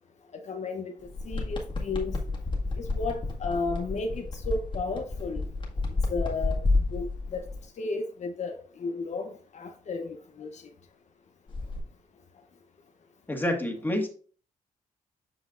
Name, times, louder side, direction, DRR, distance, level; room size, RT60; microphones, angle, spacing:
voice 1, 0.3-0.9 1.2-2.2 2.8-5.5 6.1-7.5 7.8-10.6, left 3 dB, 50° left, 0.8 m, -33 dB
sound 1, 1.0-7.6 11.5-11.8, left 3 dB, 35° left, 1.8 m, -30 dB
voice 2, 13.3-14.1, left 1 dB, 15° left, 1.7 m, -28 dB
7.7 x 5.4 x 2.5 m
cardioid pair, 80°, 15 cm